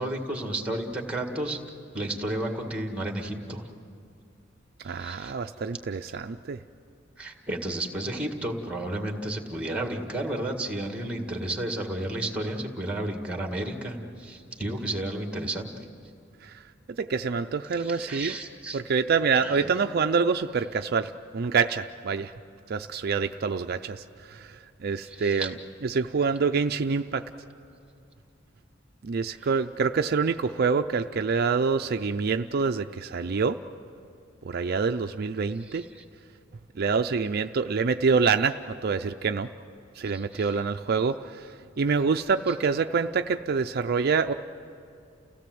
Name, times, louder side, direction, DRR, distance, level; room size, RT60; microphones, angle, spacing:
voice 1, 0.0-1.6 1.9-3.7 4.8-5.3 7.2-15.7 17.8-18.8 19.4-19.7 25.1-25.5 29.4-29.5 35.6-36.0 40.1-40.6, right 1 dB, 5° right, 4 dB, 1.9 m, -32 dB
voice 2, 4.8-6.6 16.4-16.6 17.0-18.3 18.7-22.3 22.7-25.5 25.8-27.2 29.0-33.6 34.4-35.8 36.8-39.5 40.0-41.5 41.8-44.3, right 5 dB, 55° right, 7 dB, 0.5 m, -26 dB
30.0 x 16.5 x 7.8 m, 2.5 s
head